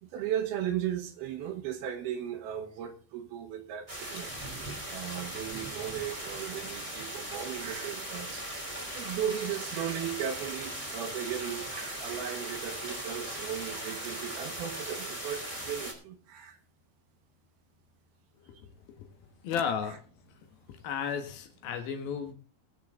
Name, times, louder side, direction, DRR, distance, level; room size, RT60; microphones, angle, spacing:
voice 1, 0.0-4.3 4.9-8.4 8.9-16.6, right 10 dB, 75° right, 5 dB, 3.2 m, -36 dB
sound 1, 3.9-15.9, right 1 dB, 10° right, 2.4 m, -39 dB
voice 2, 19.4-20.0 20.7-22.3, left 7 dB, 70° left, 7 dB, 3.3 m, -33 dB
20.5 x 7.3 x 3.9 m, 0.36 s
omnidirectional pair, 4.5 m